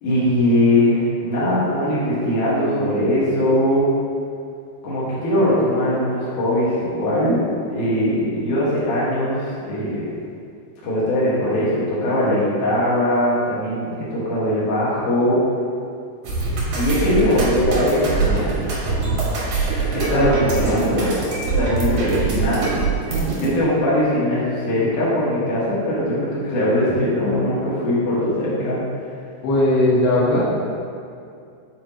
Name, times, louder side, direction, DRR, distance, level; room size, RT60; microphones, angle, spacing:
voice 1, 0.0-3.9 4.8-7.4 7.7-10.1 10.8-15.4 16.7-18.5 19.9-21.3 21.6-28.8, left 1 dB, 60° left, -8 dB, 2.7 m, -21 dB
sound 1, 16.2-23.5, right 4 dB, 65° right, 1.6 m, -23 dB
voice 2, 29.4-30.5, left 1 dB, 80° left, -7 dB, 3.1 m, -18 dB
7.6 x 5.0 x 2.9 m, 2.4 s
omnidirectional pair, 4.7 m